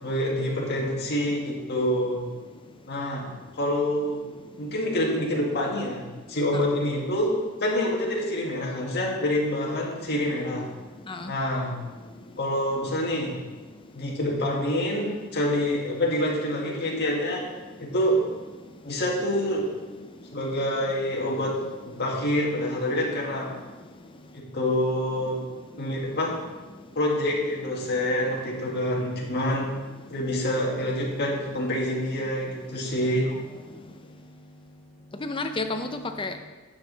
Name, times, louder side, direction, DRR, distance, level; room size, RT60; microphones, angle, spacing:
voice 1, 0.0-2.3 2.9-3.3 3.6-4.3 4.6-10.7 11.3-11.8 12.4-13.4 13.9-17.5 17.8-18.2 18.8-19.7 20.3-21.6 21.9-23.5 24.3-25.4 25.8-26.4 27.0-29.7 30.1-33.3, left 1 dB, 50° left, -2 dB, 1.9 m, -26 dB
voice 2, 35.2-36.4, left 2 dB, 25° left, 6 dB, 0.6 m, -31 dB
9.5 x 7.4 x 4.0 m, 1.3 s
head